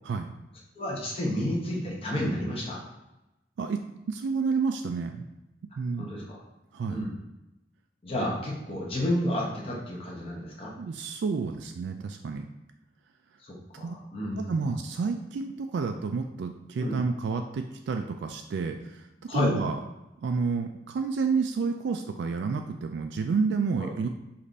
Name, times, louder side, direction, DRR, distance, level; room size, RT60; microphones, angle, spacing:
voice 1, 0.8-2.8 6.0-6.4 6.9-7.1 8.0-10.7 13.4-14.7 16.8-17.0 19.3-19.5 23.8-23.9, left 1 dB, 30° left, -4 dB, 1.0 m, -31 dB
voice 2, 4.1-5.2 5.8-6.1 6.7-7.0 10.8-12.5 13.7-14.0 14.4-19.1 19.3-19.8 20.2-24.1, right 5 dB, 75° right, 5 dB, 0.3 m, -30 dB
5.2 x 2.5 x 4.0 m, 0.96 s
head